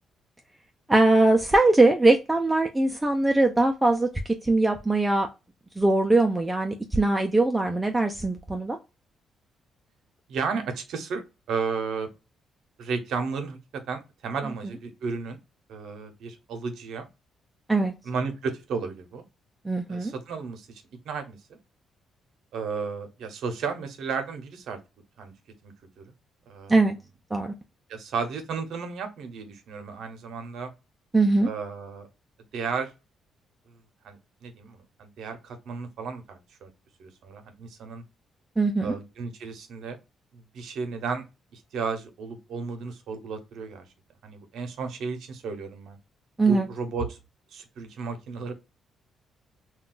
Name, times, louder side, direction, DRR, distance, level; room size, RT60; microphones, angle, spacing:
voice 1, 0.9-4.1 4.4-5.3 5.8-8.8 17.7-17.9 19.6-20.1 26.7-27.0 27.3-27.5 31.1-31.5 38.6-38.9 46.4-46.7, right 2 dB, 10° right, 0.4 m, -21 dB
voice 2, 10.3-11.2 11.5-12.1 12.8-15.4 15.7-17.1 18.0-19.2 19.9-21.4 22.5-24.8 25.2-25.3 25.6-26.0 26.5-26.8 27.9-30.7 31.4-32.1 32.5-32.9 34.0-36.7 37.0-38.0 38.8-40.0 40.3-41.2 41.5-43.8 44.2-46.0 46.5-47.2 47.5-48.5, right 5 dB, 75° right, 0.7 m, -33 dB
2.3 x 2.3 x 3.7 m
cardioid pair, 90°, 0 cm